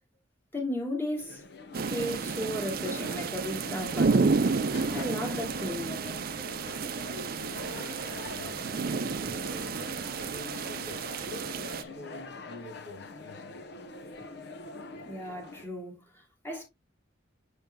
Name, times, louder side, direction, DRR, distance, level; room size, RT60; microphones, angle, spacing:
voice 1, 0.5-1.4 1.8-4.4 4.9-6.0 15.1-16.6, left 1 dB, 10° left, 2.6 m, -35 dB
sound 1, 1.2-15.7, left 3 dB, 60° left, 0.8 m, -44 dB
sound 2, 1.7-11.8, right 4 dB, 50° right, 0.5 m, -31 dB
sound 3, 3.7-10.5, left 1 dB, 35° left, 2.3 m, -55 dB
voice 2, 7.0-9.8 10.2-11.3 11.7-13.8, left 2 dB, 85° left, 2.2 m, -47 dB
6.9 x 6.5 x 2.2 m
head